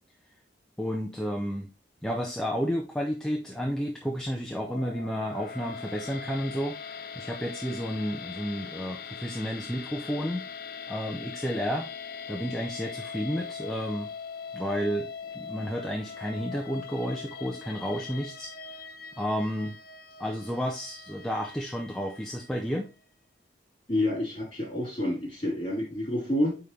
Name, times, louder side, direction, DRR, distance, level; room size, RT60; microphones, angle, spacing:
voice 1, 0.8-1.7 2.0-6.8 7.2-10.5 10.9-11.9 12.3-14.1 14.5-15.1 15.3-18.5 19.2-19.8 20.2-22.9, equal, 5° left, 0 dB, 0.5 m, -31 dB
sound 1, 4.5-22.8, left 6 dB, 50° left, 0.5 m, -41 dB
voice 2, 23.9-26.6, left 1 dB, 25° left, -3 dB, 3.9 m, -28 dB
8.9 x 3.5 x 3.3 m, 0.32 s
head